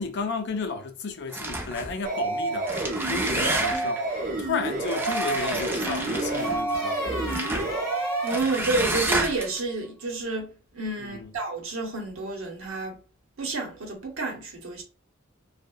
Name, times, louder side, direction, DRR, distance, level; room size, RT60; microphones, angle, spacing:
voice 1, 0.0-7.0 11.0-11.3, left 4 dB, 55° left, 0.5 m, -33 dB
sound 1, 1.3-1.9 2.5-4.0 4.8-6.6 7.3-7.7 8.3-9.6, right 2 dB, 10° right, 0.3 m, -30 dB
sound 2, 2.0-8.4, right 2 dB, 45° right, 0.6 m, -29 dB
sound 3, 3.1-3.9 5.8-9.4, equal, 15° left, 1.4 m, -35 dB
voice 2, 7.8-13.0 13.4-14.8, right 3 dB, 75° right, 0.8 m, -30 dB
2.7 x 2.0 x 2.2 m
head